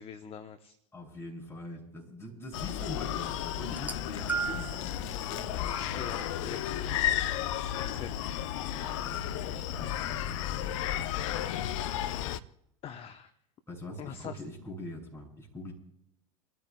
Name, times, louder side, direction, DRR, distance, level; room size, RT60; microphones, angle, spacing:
voice 1, 0.0-0.8 5.9-6.2 6.5-7.2 7.6-8.4 9.2-9.7 12.8-13.3 14.0-14.4, left 8 dB, 35° left, 9 dB, 1.0 m, -44 dB
voice 2, 0.9-5.6 5.9-7.0 8.7-11.1 13.7-15.7, left 1 dB, 15° left, -2 dB, 6.8 m, -44 dB
Screaming, 2.5-12.4, left 11 dB, 60° left, 0.7 m, -33 dB
sound 1, 3.7-4.8 5.7-5.9 6.9-7.0, right 6 dB, 10° right, 1.3 m, -35 dB
29.0 x 14.0 x 2.3 m, 0.78 s
figure-of-eight pair, 80°, 18 cm